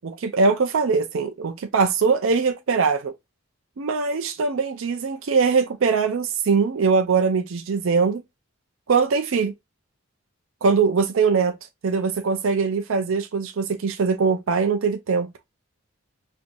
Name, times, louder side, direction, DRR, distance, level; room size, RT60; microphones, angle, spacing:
voice 1, 0.0-3.1 3.8-8.2 8.9-9.5 10.6-11.6 11.8-15.3, right 5 dB, 70° right, 0.5 m, -22 dB
4.5 x 2.6 x 2.6 m
head